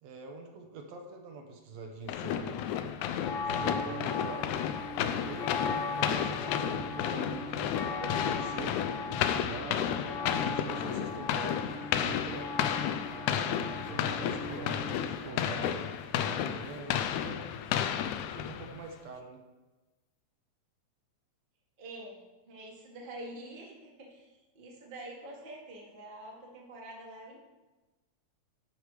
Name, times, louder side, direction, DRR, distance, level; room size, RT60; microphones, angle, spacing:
voice 1, 0.0-2.6 3.2-4.5 5.0-12.5 13.1-17.5 18.2-19.4, right 4 dB, 70° right, 2 dB, 2.0 m, -45 dB
sound 1, 2.1-18.9, left 9 dB, 80° left, 1.9 m, -32 dB
sound 2, 3.2-15.2, left 3 dB, 65° left, 1.2 m, -38 dB
voice 2, 21.8-27.4, right 1 dB, 25° right, -2 dB, 1.1 m, -46 dB
12.5 x 5.0 x 4.7 m, 1.2 s
omnidirectional pair, 3.4 m